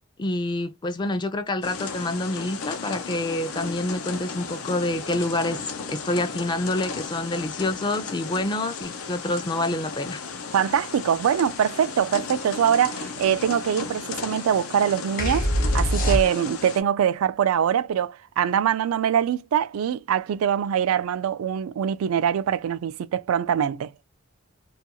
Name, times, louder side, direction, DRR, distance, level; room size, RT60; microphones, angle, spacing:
voice 1, 0.2-10.2, left 2 dB, 20° left, 0.3 m, -27 dB
sound 1, 1.6-16.8, left 5 dB, 90° left, 0.5 m, -35 dB
voice 2, 10.5-15.5 15.7-23.9, right 9 dB, 85° right, 0.3 m, -23 dB
sound 2, 15.2-16.7, equal, 45° left, 0.8 m, -23 dB
2.3 x 2.3 x 2.8 m
head